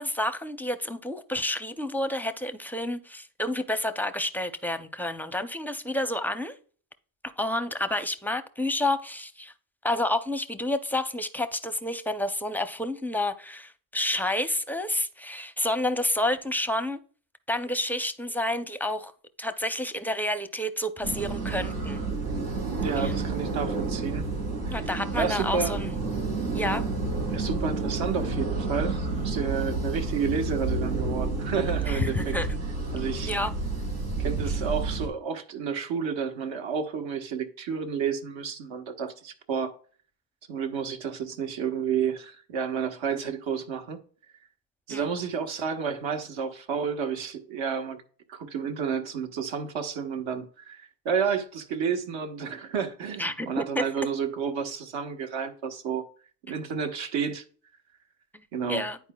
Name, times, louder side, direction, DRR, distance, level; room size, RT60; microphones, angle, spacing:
voice 1, 0.0-6.6 7.2-9.5 9.8-17.0 17.5-19.1 19.4-22.0 23.0-23.1 24.7-25.9 26.5-26.8 31.9-32.5 33.3-33.5 44.9-45.1 53.2-53.8 58.3-59.0, left 1 dB, 5° left, 0.5 m, -29 dB
sound 1, 21.0-35.1, right 3 dB, 85° right, 3.0 m, -30 dB
voice 2, 22.8-24.3 24.7-24.8 25.2-25.8 27.3-32.4 32.9-33.4 34.2-39.7 40.5-44.0 44.9-48.0 48.3-56.0 56.4-57.4 58.5-58.8, right 6 dB, 65° right, 1.3 m, -31 dB
10.0 x 4.6 x 2.3 m
cardioid pair, 95°, 50 cm